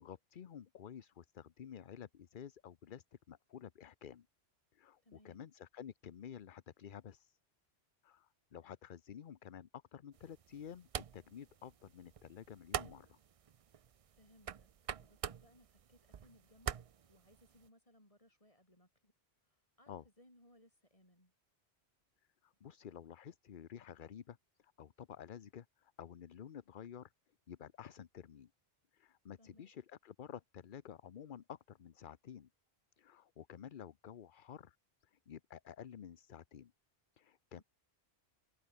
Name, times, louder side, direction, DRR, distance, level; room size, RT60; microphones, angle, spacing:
voice 1, 0.0-4.3 4.7-7.4 8.0-13.2 19.9-20.1 22.4-27.1 27.5-28.5 28.9-32.5 33.0-34.8 35.0-36.7 37.1-37.6, left 8 dB, 55° left, 0.9 m, -51 dB
voice 2, 5.0-5.4 14.1-14.7 15.0-19.1 19.4-21.3 29.4-29.7 37.6-37.7, left 1 dB, 30° left, 7.3 m, -66 dB
sound 1, 10.1-17.7, right 8 dB, 45° right, 0.4 m, -46 dB
omnidirectional pair, 1.1 m